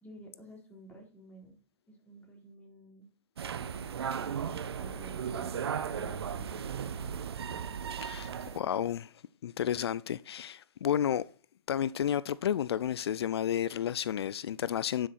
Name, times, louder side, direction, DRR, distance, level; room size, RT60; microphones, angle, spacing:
voice 1, 0.0-1.6 1.9-3.1 4.2-6.9, right 1 dB, 10° left, 3.9 m, -52 dB
sound 1, 3.4-8.6, right 7 dB, 75° right, 0.9 m, -36 dB
voice 2, 8.0-9.1 9.4-11.2 11.7-15.1, left 10 dB, 75° left, 0.4 m, -31 dB
12.0 x 6.4 x 4.2 m
hypercardioid pair, 115°, 13 cm